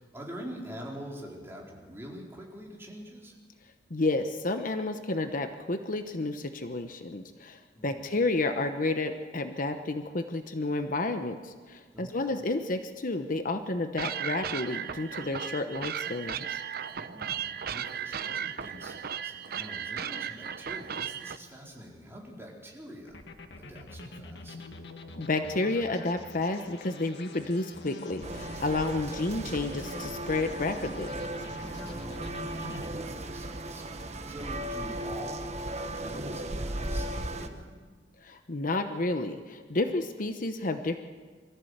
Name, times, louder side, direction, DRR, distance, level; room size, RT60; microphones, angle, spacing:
voice 1, 0.0-3.4 7.7-8.1 11.9-12.3 16.8-23.2 23.6-24.6 31.6-35.5 35.8-37.8, equal, 15° right, -2 dB, 4.2 m, -45 dB
voice 2, 3.9-16.6 25.2-31.1 38.2-41.0, left 2 dB, 50° left, 7 dB, 1.0 m, -31 dB
sound 1, 14.0-21.4, right 8 dB, 60° right, 0.7 m, -36 dB
sound 2, 23.1-32.9, left 2 dB, 70° left, 1.7 m, -45 dB
sound 3, 28.2-37.5, right 1 dB, 40° right, 1.3 m, -36 dB
23.5 x 14.5 x 8.1 m, 1.5 s
head